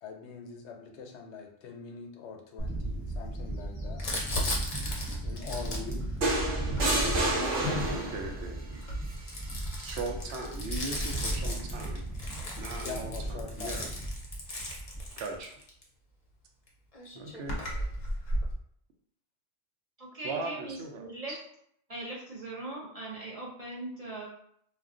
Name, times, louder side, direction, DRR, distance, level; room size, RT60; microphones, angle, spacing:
voice 1, 0.0-4.0 5.2-6.0 12.6-13.8, left 5 dB, 75° left, 3 dB, 0.9 m, -43 dB
Bird / Wind, 2.6-15.4, right 1 dB, ahead, 0.8 m, -36 dB
Crumpling crinkling, 4.0-8.0 8.7-15.8 16.7-16.8 16.9-18.5, left 1 dB, 40° left, 0.6 m, -36 dB
sound 1, 6.2-8.3 9.7-10.0, right 1 dB, 90° right, 1.2 m, -29 dB
voice 2, 7.9-8.8 9.8-12.0 12.6-13.9 15.2-15.5 17.1-17.6 20.2-21.0, right 3 dB, 70° right, 2 dB, 0.8 m, -39 dB
voice 3, 20.0-21.4 21.9-24.3, right 2 dB, 40° right, -5 dB, 0.6 m, -40 dB
2.4 x 2.2 x 3.6 m, 0.68 s
omnidirectional pair, 1.2 m